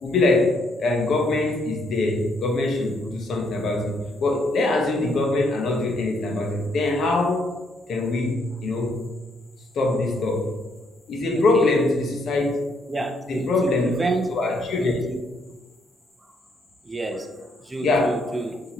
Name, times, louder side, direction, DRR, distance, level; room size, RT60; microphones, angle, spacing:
voice 1, 0.0-7.5 7.9-9.0 9.7-10.5 11.1-12.5 13.3-13.9 14.3-15.0 17.8-18.1, left 2 dB, 60° left, 2 dB, 0.8 m, -23 dB
voice 2, 11.3-11.8 12.1-12.2 12.9-14.3 14.8-15.3 16.2-16.3 16.8-18.6, right 2 dB, 20° right, 5 dB, 0.5 m, -30 dB
5.8 x 2.8 x 2.9 m, 1.2 s
cardioid pair, 90°, 0 cm